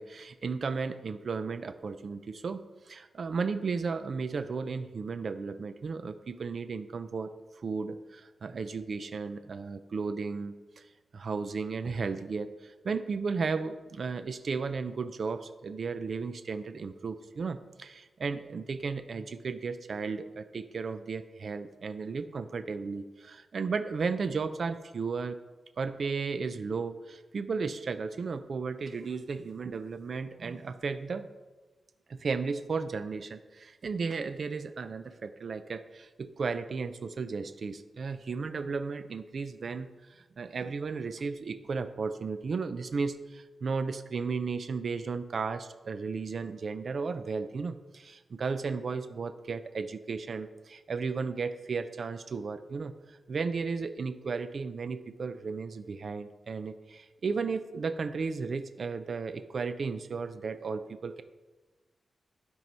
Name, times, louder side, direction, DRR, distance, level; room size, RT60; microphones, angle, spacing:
voice 1, 0.0-7.3 7.6-25.4 25.8-31.3 32.1-61.2, right 4 dB, 55° right, 10 dB, 0.4 m, -34 dB
12.0 x 4.6 x 5.5 m, 1.2 s
wide cardioid pair, 135°, 0 cm